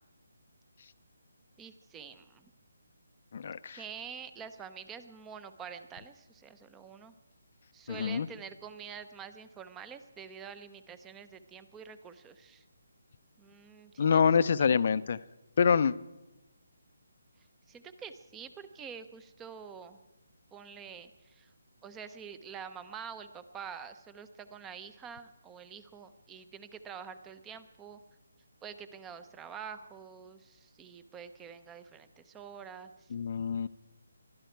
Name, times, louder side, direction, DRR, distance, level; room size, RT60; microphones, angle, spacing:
voice 1, 1.6-2.5 3.7-7.1 7.7-12.6 13.4-14.3 14.6-14.8 17.7-20.0 20.5-21.5 21.8-28.0 28.6-33.1, right 7 dB, 10° right, 11 dB, 0.8 m, -47 dB
voice 2, 3.3-3.8 7.9-8.3 14.0-15.2 15.6-15.9 33.1-33.7, left 6 dB, 50° left, 15 dB, 0.6 m, -26 dB
21.5 x 12.5 x 4.6 m, 1.0 s
figure-of-eight pair, 160°, 0 cm